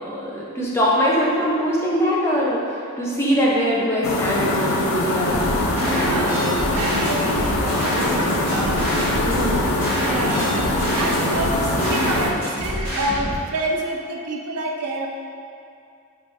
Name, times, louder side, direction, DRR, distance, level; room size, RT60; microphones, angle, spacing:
voice 1, 0.0-2.6 3.0-6.5 9.2-9.6, equal, 10° left, -5 dB, 0.5 m, -22 dB
sound 1, 4.0-12.3, left 1 dB, 65° left, 0.4 m, -23 dB
sound 2, 5.3-13.3, equal, 10° right, 1.3 m, -27 dB
voice 2, 5.9-8.9 10.0-10.6 10.9-15.1, right 2 dB, 85° right, 1 dB, 0.5 m, -28 dB
4.7 x 3.2 x 2.6 m, 2.5 s
head